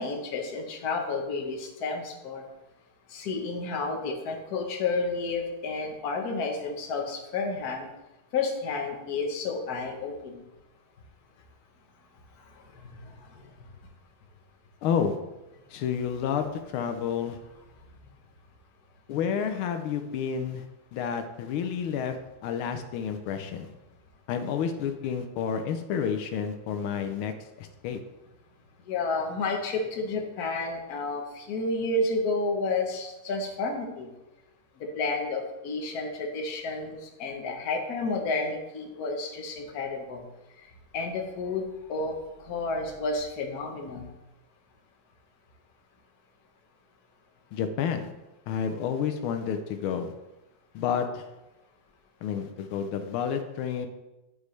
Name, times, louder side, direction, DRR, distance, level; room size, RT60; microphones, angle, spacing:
voice 1, 0.0-2.4 3.1-7.9 8.3-10.4 12.9-13.3 28.9-34.1 34.8-40.2 40.9-44.1, left 3 dB, 50° left, 2 dB, 1.4 m, -31 dB
voice 2, 14.8-15.2 15.7-17.4 19.1-20.7 20.9-22.2 22.4-23.7 24.3-27.3 27.6-28.0 47.5-48.1 48.5-50.1 50.7-51.2 52.2-53.9, left 7 dB, 80° left, 7 dB, 1.5 m, -30 dB
10.5 x 4.8 x 3.2 m, 1.0 s
omnidirectional pair, 2.3 m